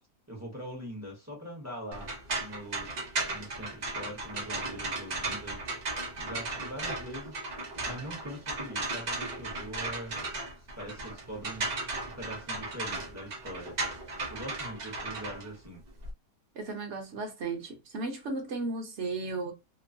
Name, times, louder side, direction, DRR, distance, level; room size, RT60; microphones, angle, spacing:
voice 1, 0.3-2.1 2.4-2.9 3.3-5.6 6.2-7.4 7.9-10.3 10.8-11.7 12.2-13.8 14.3-15.8, equal, 15° right, 0.6 m, -42 dB
sound 1, 1.9-16.1, right 2 dB, 90° right, 0.3 m, -36 dB
voice 2, 16.6-19.5, right 3 dB, 55° right, 0.9 m, -35 dB
3.0 x 2.0 x 2.5 m
omnidirectional pair, 1.7 m